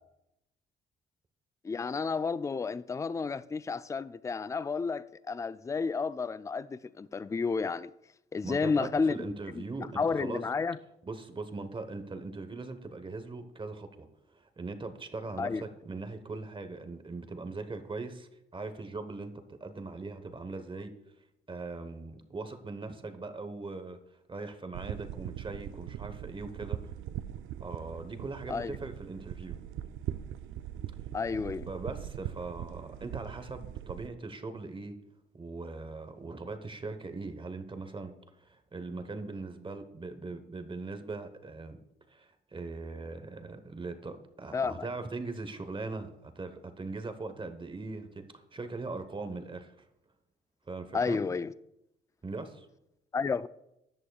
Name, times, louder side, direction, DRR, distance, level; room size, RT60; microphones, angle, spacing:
voice 1, 1.6-7.9 8.3-10.8 15.4-15.6 28.5-28.8 31.1-31.7 44.5-44.9 50.9-51.5 53.1-53.5, left 4 dB, 15° left, 0.3 m, -31 dB
voice 2, 8.4-9.9 10.2-10.5 11.1-20.9 21.5-24.0 24.3-26.9 27.6-29.6 31.7-35.0 35.3-38.1 38.4-41.8 42.1-48.2 48.5-49.9 50.7-51.2 52.2-52.7, right 3 dB, 25° right, 1.1 m, -40 dB
sound 1, 24.7-34.1, right 11 dB, 85° right, 0.5 m, -41 dB
14.5 x 10.5 x 2.4 m
cardioid pair, 90°, 20 cm